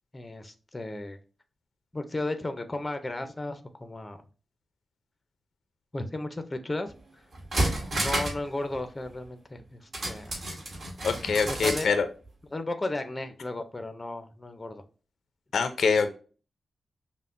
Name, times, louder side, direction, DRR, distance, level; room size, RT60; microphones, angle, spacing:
voice 1, 0.1-1.2 1.9-4.2 5.9-6.9 7.9-10.4 11.5-11.9 12.5-14.8, left 2 dB, 20° left, 8 dB, 0.5 m, -34 dB
sound 1, 6.9-7.0 7.3-8.5 8.7-8.8 9.9-11.9 12.2-12.3, right 1 dB, 45° right, 1.5 m, -30 dB
voice 2, 11.0-12.1 15.5-16.2, left 5 dB, 85° left, 8 dB, 0.5 m, -25 dB
5.5 x 2.1 x 2.5 m, 0.37 s
wide cardioid pair, 125°, 0 cm